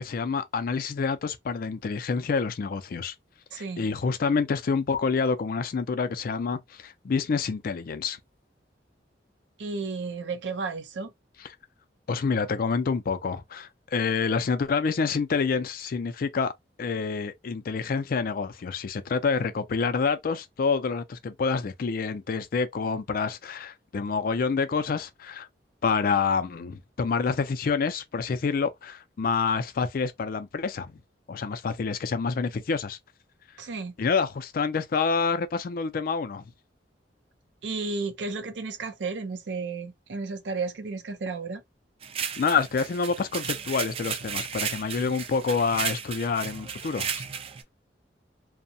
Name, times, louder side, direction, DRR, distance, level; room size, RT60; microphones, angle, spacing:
voice 1, 0.0-3.1 3.8-8.2 12.1-16.5 16.8-25.5 25.8-30.9 31.3-33.0 34.0-36.4 42.4-47.2, left 5 dB, 55° left, 0.4 m, -27 dB
voice 2, 3.5-3.9 9.6-11.1 33.6-34.0 37.6-41.6, right 4 dB, 85° right, 0.5 m, -33 dB
sound 1, 42.0-47.6, right 7 dB, 35° right, 0.3 m, -34 dB
2.7 x 2.1 x 2.6 m
head